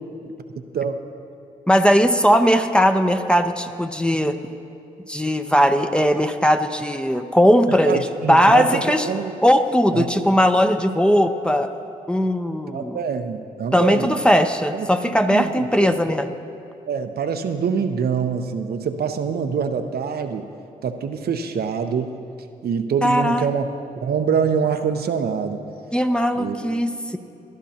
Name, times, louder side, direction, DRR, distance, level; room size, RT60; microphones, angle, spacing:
voice 1, 1.7-4.4 5.1-9.1 9.4-11.7 12.1-13.0 13.7-16.3 23.0-23.5 25.9-27.2, equal, 5° left, 7 dB, 0.7 m, -18 dB
voice 2, 7.9-9.3 9.9-10.1 12.7-14.2 14.7-15.9 16.9-20.5 20.8-22.1 22.6-23.7 24.0-25.6 26.4-26.6, right 6 dB, 65° right, 6 dB, 0.7 m, -25 dB
18.5 x 11.5 x 2.8 m, 2.6 s
supercardioid pair, 45°, 17 cm